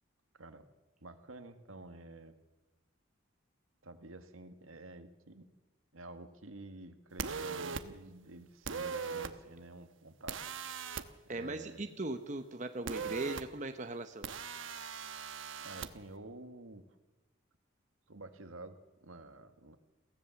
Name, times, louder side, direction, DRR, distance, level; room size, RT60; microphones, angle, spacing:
voice 1, 0.3-0.7 1.0-2.4 3.8-5.5 5.9-10.5 11.3-12.0 13.0-13.2 15.6-16.9 18.1-19.8, right 2 dB, 85° right, 8 dB, 1.7 m, -50 dB
sound 1, 7.2-7.8 8.7-9.3 10.3-11.0 12.9-13.4 14.2-15.9, right 5 dB, 70° right, 1.1 m, -39 dB
voice 2, 11.3-14.3, right 2 dB, 35° right, 7 dB, 1.0 m, -39 dB
22.5 x 16.0 x 7.1 m, 1.1 s
head